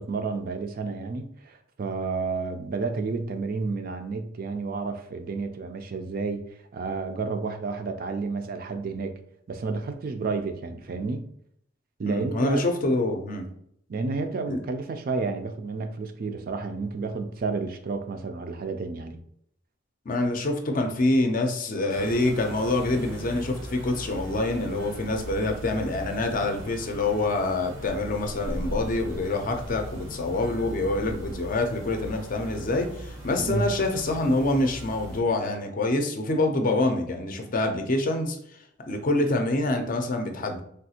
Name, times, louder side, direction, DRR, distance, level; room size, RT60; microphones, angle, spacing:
voice 1, 0.0-6.4 6.7-9.2 9.5-11.2 12.0-12.7 13.9-19.2 33.5-33.7, right 4 dB, 50° right, 7 dB, 0.4 m, -31 dB
voice 2, 12.1-13.5 14.5-14.6 20.1-38.4 38.9-40.6, left 2 dB, 45° left, 4 dB, 0.5 m, -26 dB
sound 1, 21.9-35.2, right 1 dB, 90° right, 0.7 m, -39 dB
3.4 x 2.4 x 2.8 m, 0.69 s
head